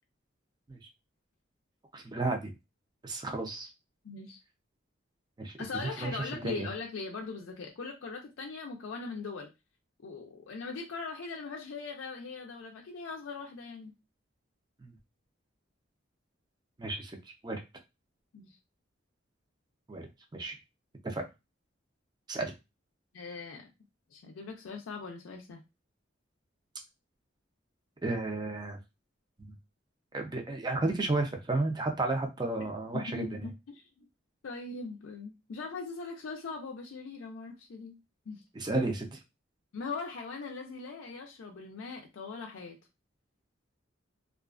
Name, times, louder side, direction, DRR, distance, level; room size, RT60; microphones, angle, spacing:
voice 1, 1.9-2.5 3.0-3.7 5.4-5.5 6.0-6.1 6.4-6.7 14.8-14.9 16.8-17.2 17.4-17.6 19.9-20.1 20.3-20.6 21.0-21.2 22.3-22.5 28.0-28.8 30.1-33.4 38.5-39.2, right 2 dB, 20° right, 3 dB, 0.5 m, -32 dB
voice 2, 4.0-4.4 5.6-9.5 10.0-13.9 18.3-18.6 23.1-23.7 24.1-25.6 32.6-32.7 32.9-34.1 34.4-38.0 38.3-38.4 39.7-42.8, left 4 dB, 75° left, 1 dB, 0.4 m, -40 dB
2.4 x 2.3 x 2.3 m, 0.24 s
head